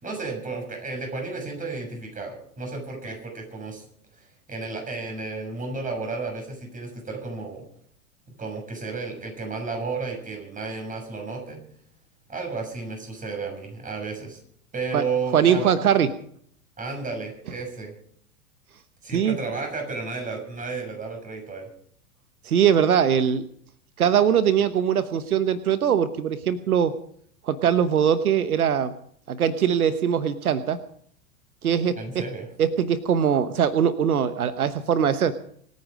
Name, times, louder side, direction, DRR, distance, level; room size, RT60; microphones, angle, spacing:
voice 1, 0.0-3.8 4.1-7.6 8.4-11.6 12.3-14.4 14.7-15.7 16.8-17.9 19.0-21.7 31.9-32.5, right 4 dB, 20° right, 3 dB, 6.5 m, -32 dB
voice 2, 15.3-16.1 19.1-19.4 22.4-23.4 24.0-26.9 27.4-28.9 29.3-30.8 31.6-32.0 32.6-35.3, right 8 dB, 85° right, 12 dB, 1.1 m, -21 dB
26.0 x 9.6 x 5.1 m, 0.64 s
hypercardioid pair, 105°, 43 cm